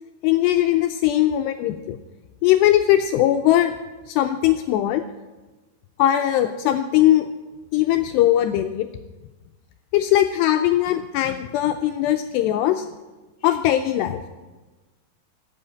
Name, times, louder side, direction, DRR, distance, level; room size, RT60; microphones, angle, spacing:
voice 1, 0.2-2.0 2.4-3.8 4.1-5.0 6.0-7.3 7.7-8.9 9.9-12.9 13.4-14.2, left 13 dB, 90° left, 6 dB, 2.4 m, -20 dB
15.0 x 8.2 x 9.7 m, 1.2 s
omnidirectional pair, 5.5 m